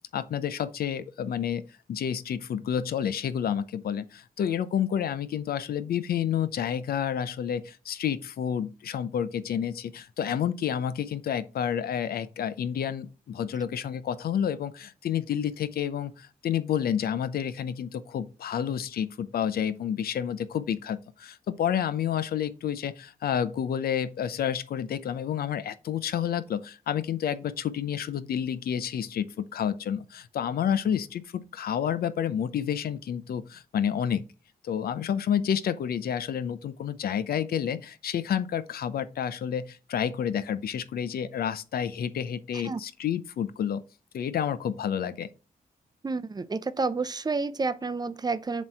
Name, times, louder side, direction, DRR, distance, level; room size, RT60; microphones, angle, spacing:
voice 1, 0.1-34.3 34.6-43.8 44.1-45.3, left 9 dB, 90° left, 0.6 m, -29 dB
voice 2, 46.0-48.6, right 4 dB, 25° right, 0.5 m, -30 dB
7.4 x 3.1 x 5.5 m
wide cardioid pair, 115°, 15 cm